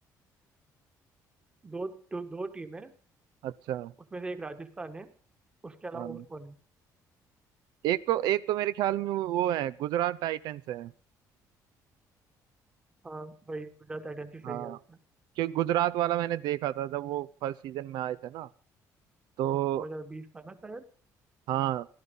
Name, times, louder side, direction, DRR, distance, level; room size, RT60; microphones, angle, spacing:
voice 1, 1.6-2.9 4.1-5.1 5.6-6.6 13.0-15.0 19.7-20.8, right 2 dB, 15° right, 9 dB, 1.4 m, -40 dB
voice 2, 3.4-3.9 5.9-6.2 7.8-10.9 14.4-14.8 15.4-18.5 19.4-19.9 21.5-21.9, right 13 dB, 90° right, 15 dB, 0.6 m, -30 dB
16.5 x 12.5 x 5.4 m, 0.41 s
cardioid pair, 165°, 7 cm